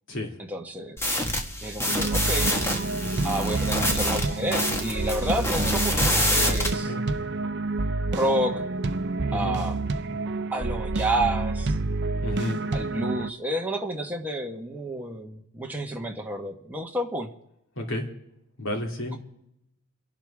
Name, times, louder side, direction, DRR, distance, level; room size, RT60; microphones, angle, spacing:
voice 1, 0.5-1.1 1.6-2.5 3.2-6.9 8.1-8.6 9.3-9.8 10.5-11.8 12.7-17.3, right 1 dB, 5° right, 1 dB, 1.4 m, -30 dB
sound 1, 1.0-6.7, left 1 dB, 10° left, 1.6 m, -27 dB
sound 2, 1.8-13.3, right 3 dB, 55° right, 0.7 m, -28 dB
voice 2, 6.7-7.0 9.3-9.6 12.2-12.6 17.8-18.0 18.6-19.2, left 1 dB, 60° left, 2 dB, 2.8 m, -31 dB
29.0 x 11.5 x 3.5 m, 0.85 s
head